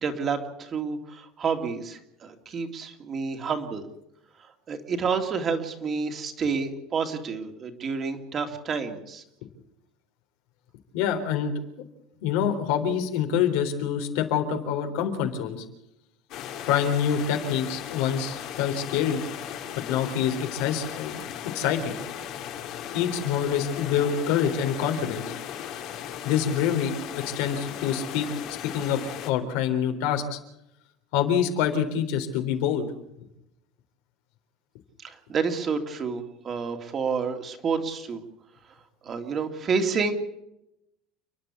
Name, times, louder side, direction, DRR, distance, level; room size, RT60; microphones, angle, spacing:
voice 1, 0.0-3.8 4.7-9.2 35.0-38.2 39.0-40.1, right 5 dB, 25° right, 5 dB, 2.3 m, -29 dB
voice 2, 10.9-11.5 12.2-15.6 16.6-19.2 19.9-21.2 21.5-22.0 22.9-25.2 26.2-28.3 28.6-30.4 31.1-32.9, left 8 dB, 75° left, 5 dB, 3.9 m, -26 dB
sound 1, 16.3-29.3, left 10 dB, 50° left, 2.4 m, -37 dB
29.5 x 11.0 x 8.4 m, 0.82 s
cardioid pair, 165°, 0 cm